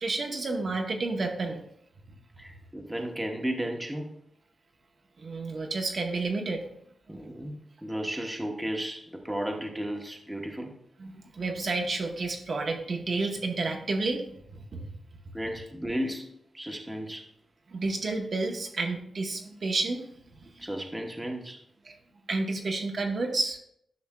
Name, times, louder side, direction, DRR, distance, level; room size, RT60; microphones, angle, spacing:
voice 1, 0.0-1.6 5.2-6.7 7.1-7.2 11.0-14.9 17.7-20.1 20.4-20.7 21.8-22.0 22.3-23.6, right 3 dB, 50° right, 3 dB, 0.8 m, -31 dB
voice 2, 2.4-4.1 7.1-10.7 15.3-17.3 20.6-21.6, equal, 5° right, 2 dB, 0.8 m, -34 dB
10.5 x 5.9 x 2.2 m, 0.71 s
wide cardioid pair, 125°, 0 cm